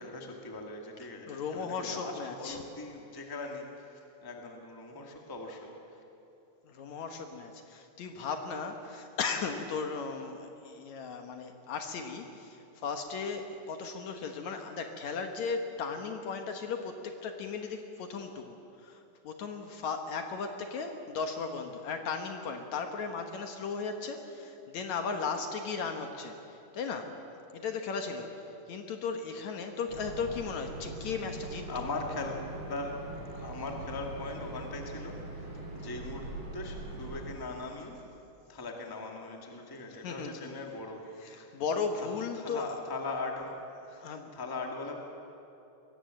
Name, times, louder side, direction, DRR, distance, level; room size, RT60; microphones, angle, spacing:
voice 1, 0.0-5.7 31.7-36.2 36.5-38.0 38.5-41.6 42.3-44.0 44.3-44.9, left 3 dB, 10° left, 1 dB, 1.5 m, -40 dB
voice 2, 1.3-2.6 6.6-27.2 27.5-31.7 40.0-40.3 41.2-42.8 44.0-44.3, left 5 dB, 65° left, 5 dB, 2.4 m, -36 dB
sound 1, 29.9-37.3, right 2 dB, 50° right, 5.6 m, -42 dB
22.5 x 17.5 x 7.8 m, 2.8 s
omnidirectional pair, 3.8 m